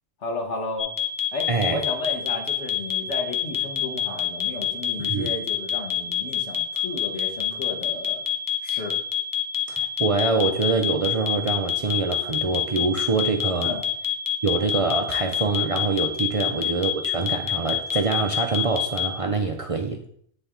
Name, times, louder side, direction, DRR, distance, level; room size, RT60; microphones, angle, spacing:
voice 1, 0.2-0.9 1.3-8.2 8.6-9.0 13.6-13.8 16.4-16.6, left 3 dB, 90° left, 2 dB, 1.5 m, -33 dB
sound 1, 0.8-19.1, left 11 dB, 20° left, 0.6 m, -25 dB
voice 2, 1.5-1.8 5.0-5.3 9.7-13.8 14.4-20.0, right 4 dB, 50° right, 3 dB, 0.4 m, -25 dB
9.6 x 3.4 x 3.6 m, 0.64 s
omnidirectional pair, 1.2 m